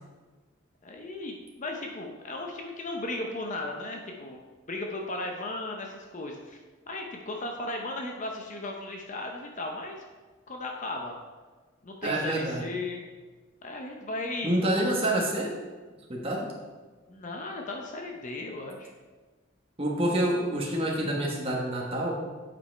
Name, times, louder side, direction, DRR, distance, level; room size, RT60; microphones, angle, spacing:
voice 1, 0.8-4.4 4.7-6.6 6.9-10.0 10.5-11.2 11.8-13.1 13.6-14.6 17.1-18.9, left 2 dB, 40° left, 2 dB, 0.7 m, -36 dB
voice 2, 12.0-12.6 14.4-15.5 16.1-16.5 19.8-22.2, right 1 dB, 30° right, -3 dB, 1.2 m, -27 dB
8.4 x 5.3 x 4.5 m, 1.3 s
head